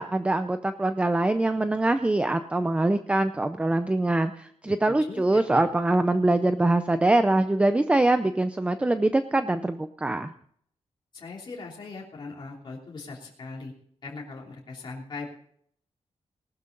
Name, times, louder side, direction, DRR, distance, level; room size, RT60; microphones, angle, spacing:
voice 1, 0.0-10.3, right 2 dB, 10° right, 9 dB, 0.5 m, -23 dB
voice 2, 4.8-5.6 11.1-13.7 14.0-15.3, left 3 dB, 40° left, -3 dB, 3.1 m, -40 dB
19.0 x 12.5 x 3.9 m, 0.63 s
wide cardioid pair, 160°, 11 cm